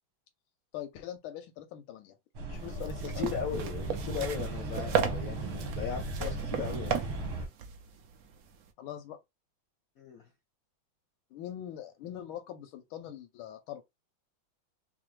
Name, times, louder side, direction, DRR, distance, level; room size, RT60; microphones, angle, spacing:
voice 1, 0.7-2.2 2.5-3.3 8.8-9.2 11.3-13.8, left 11 dB, 90° left, 1.4 m, -42 dB
sound 1, 2.4-7.5, right 2 dB, 90° right, 2.0 m, -36 dB
sound 2, 2.6-8.7, right 7 dB, 70° right, 0.9 m, -35 dB
voice 2, 3.2-7.0 10.0-10.2, left 7 dB, 70° left, 0.8 m, -37 dB
4.8 x 2.1 x 3.1 m
omnidirectional pair, 2.2 m